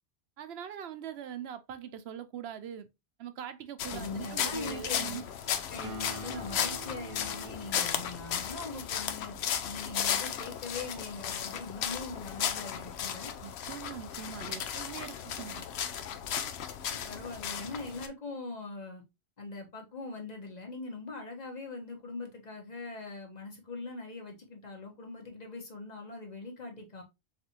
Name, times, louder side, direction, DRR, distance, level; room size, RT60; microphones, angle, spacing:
voice 1, 0.4-2.9 3.2-5.2 13.4-15.7, right 9 dB, 75° right, 0.9 m, -42 dB
sound 1, 3.8-18.1, left 8 dB, 80° left, 0.8 m, -35 dB
voice 2, 3.9-5.2 5.7-9.4 9.6-13.3 16.9-19.0 19.4-27.0, left 3 dB, 40° left, 1.2 m, -42 dB
Acoustic guitar, 5.8-9.6, right 4 dB, 40° right, 0.5 m, -47 dB
4.2 x 3.3 x 2.9 m
omnidirectional pair, 1.1 m